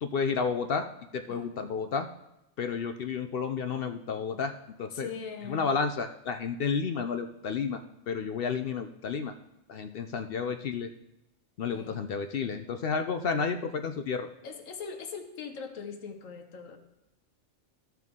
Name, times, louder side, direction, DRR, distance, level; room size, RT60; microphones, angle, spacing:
voice 1, 0.0-0.9 1.1-2.1 2.6-5.1 5.5-9.3 9.7-10.9 11.6-14.3, left 5 dB, 60° left, 7 dB, 0.6 m, -31 dB
voice 2, 4.9-5.7 11.7-12.1 14.4-16.8, left 5 dB, 80° left, 6 dB, 1.4 m, -41 dB
14.0 x 5.8 x 3.6 m, 0.89 s
omnidirectional pair, 1.3 m